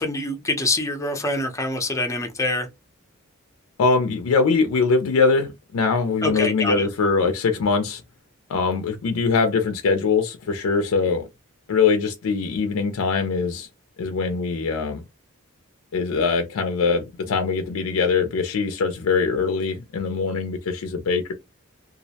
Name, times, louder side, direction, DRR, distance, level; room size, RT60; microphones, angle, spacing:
voice 1, 0.0-2.7 6.2-6.9, left 2 dB, 15° left, 0.5 m, -25 dB
voice 2, 3.8-8.0 8.5-11.3 11.7-13.7 14.0-15.0 15.9-21.3, left 4 dB, 80° left, 0.4 m, -22 dB
2.4 x 2.0 x 2.7 m
head